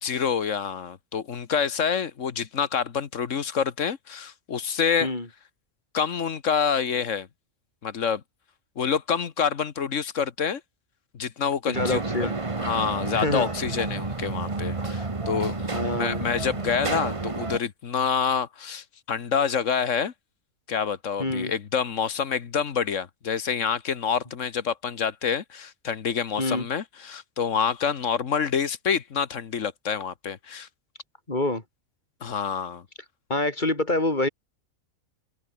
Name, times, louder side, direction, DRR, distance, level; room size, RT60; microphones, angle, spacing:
voice 1, 0.0-5.1 5.9-7.3 7.8-8.2 8.8-10.6 11.1-12.3 12.6-15.5 16.0-20.1 20.7-30.7 32.2-32.8, left 7 dB, 65° left, 1.6 m, -27 dB
voice 2, 11.7-12.4 13.1-13.5 15.7-16.3 21.2-21.5 26.4-26.7 31.3-31.6 33.3-34.3, left 2 dB, 35° left, 3.5 m, -26 dB
sound 1, 11.7-17.6, right 3 dB, 25° right, 1.4 m, -30 dB
open air
omnidirectional pair, 1.5 m